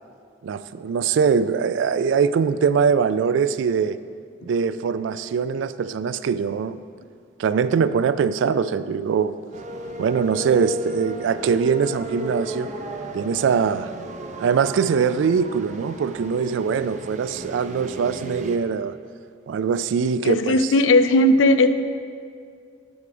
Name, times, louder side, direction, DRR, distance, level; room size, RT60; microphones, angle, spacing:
voice 1, 0.4-4.0 4.4-6.8 7.4-9.4 10.0-12.7 13.1-13.9 14.4-19.0 19.5-20.7, right 6 dB, 75° right, 14 dB, 0.3 m, -22 dB
sound 1, 9.5-18.6, equal, 40° right, 0.6 m, -34 dB
voice 2, 20.2-21.7, left 2 dB, 80° left, 10 dB, 0.5 m, -17 dB
11.0 x 4.8 x 5.0 m, 2.2 s
head